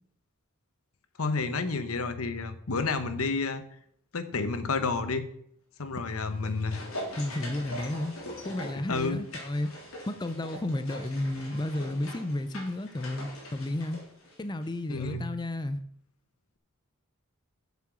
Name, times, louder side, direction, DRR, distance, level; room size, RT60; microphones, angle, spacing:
voice 1, 1.2-3.6 4.1-5.3 5.8-6.8 8.9-9.2 14.9-15.3, left 4 dB, 90° left, 10 dB, 1.0 m, -30 dB
sound 1, 6.1-14.7 15.0-15.1, equal, 75° left, 3.4 m, -42 dB
voice 2, 7.2-8.2 8.4-9.7 10.1-14.0 14.4-15.8, left 1 dB, 20° left, 11 dB, 0.5 m, -32 dB
7.6 x 7.2 x 6.2 m, 0.69 s
head